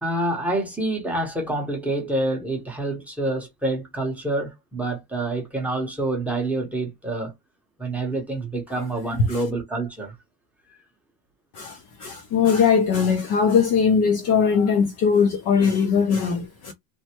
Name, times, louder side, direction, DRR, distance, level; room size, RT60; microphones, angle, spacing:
voice 1, 0.0-7.3 7.8-10.2, right 2 dB, 5° right, 0.7 m, -27 dB
voice 2, 11.5-16.7, left 6 dB, 40° left, 0.4 m, -20 dB
3.2 x 2.1 x 2.8 m
cardioid pair, 175°, 41 cm